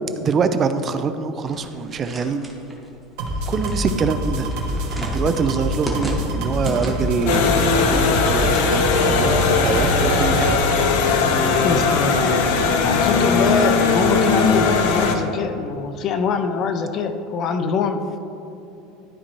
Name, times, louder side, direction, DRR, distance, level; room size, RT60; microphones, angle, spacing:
voice 1, 0.2-2.5 3.5-4.5 5.1-10.6, right 5 dB, 25° right, 10 dB, 0.4 m, -24 dB
sound 1, 1.4-7.3, equal, ahead, 0.9 m, -34 dB
sound 2, 3.2-10.6, equal, 65° right, 1.3 m, -26 dB
sound 3, 7.3-15.1, left 4 dB, 75° left, 0.7 m, -19 dB
voice 2, 11.6-12.6 12.8-18.1, left 5 dB, 35° left, 8 dB, 0.5 m, -23 dB
12.5 x 4.2 x 3.0 m, 2.8 s
supercardioid pair, 160°, 0 cm